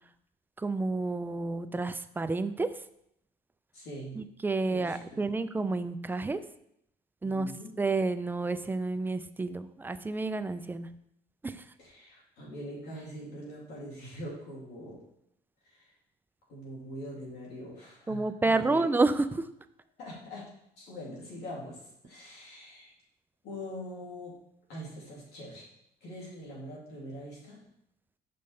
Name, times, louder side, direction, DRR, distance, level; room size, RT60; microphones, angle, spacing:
voice 1, 0.6-2.7 4.2-6.4 7.2-7.5 7.8-10.9 11.4-11.6 18.1-19.5, right 3 dB, 10° right, 12 dB, 0.3 m, -30 dB
voice 2, 3.7-4.2 4.7-5.2 7.2-7.7 11.8-15.0 15.6-15.9 16.5-18.9 20.0-20.5 20.8-22.9 23.4-24.3 24.7-25.7 26.0-27.6, equal, 80° left, -5 dB, 2.8 m, -43 dB
6.5 x 5.3 x 3.3 m, 0.76 s
cardioid pair, 110°, 17 cm